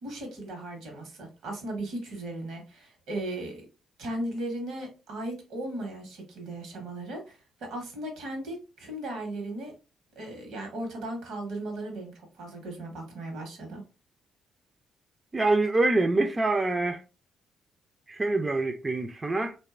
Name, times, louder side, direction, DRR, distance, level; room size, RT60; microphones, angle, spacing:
voice 1, 0.0-3.6 4.0-9.7 10.2-13.8, right 1 dB, 80° right, 0.9 m, -37 dB
voice 2, 15.3-17.0 18.1-19.6, right 2 dB, 30° right, 0.3 m, -25 dB
2.6 x 2.2 x 2.3 m
supercardioid pair, 65°, 0 cm